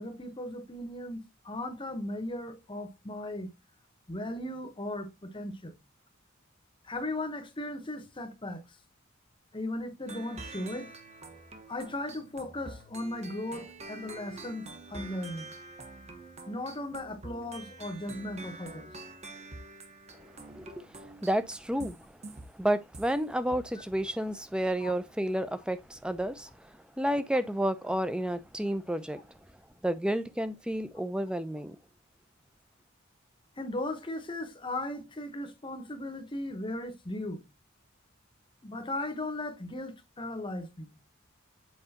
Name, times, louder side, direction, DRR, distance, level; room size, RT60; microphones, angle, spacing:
voice 1, 0.0-3.5 4.1-5.7 6.8-8.6 9.5-10.9 11.7-15.5 16.5-18.9 24.8-24.9 33.6-37.5 38.6-40.9, left 1 dB, 25° left, 0.9 m, -37 dB
sound 1, 10.1-23.2 23.5-23.8, right 2 dB, 30° right, 1.2 m, -46 dB
voice 2, 20.5-22.0 22.5-29.3 29.8-31.8, right 1 dB, 5° right, 0.5 m, -31 dB
7.8 x 4.8 x 2.8 m
head